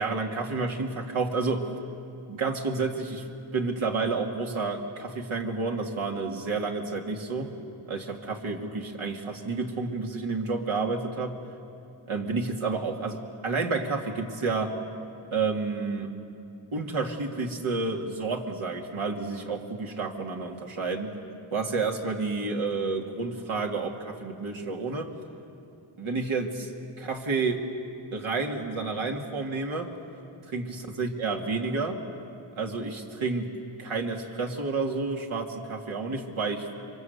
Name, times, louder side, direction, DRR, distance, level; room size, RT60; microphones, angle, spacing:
voice 1, 0.0-1.7 2.3-3.3 3.5-7.5 7.9-11.4 12.1-14.8 15.3-16.1 16.7-21.1 21.5-25.1 26.0-26.7 27.0-27.6 28.1-29.9 30.4-32.0 32.5-33.5 33.8-36.7, right 4 dB, 80° right, 1 dB, 2.6 m, -30 dB
28.0 x 24.5 x 8.2 m, 2.7 s
wide cardioid pair, 110°, 48 cm